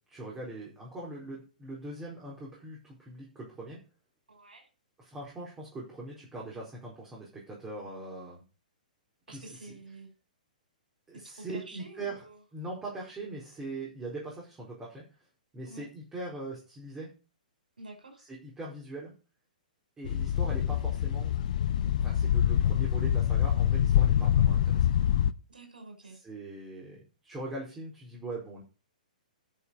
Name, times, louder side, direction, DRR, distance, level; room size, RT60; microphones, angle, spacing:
voice 1, 0.1-3.8 5.0-8.4 9.3-9.7 11.1-12.2 12.5-15.0 15.5-17.1 18.3-19.1 20.0-21.3 22.0-24.9 26.2-28.6, right 2 dB, 15° right, -4 dB, 4.7 m, -41 dB
voice 2, 4.3-4.7 9.3-10.1 11.1-12.4 15.7-15.9 17.8-18.2 25.5-26.2, right 2 dB, 85° right, 4 dB, 5.7 m, -48 dB
sound 1, 20.0-25.3, left 10 dB, 60° left, 0.7 m, -25 dB
10.0 x 7.2 x 6.4 m, 0.35 s
hypercardioid pair, 125°, 5 cm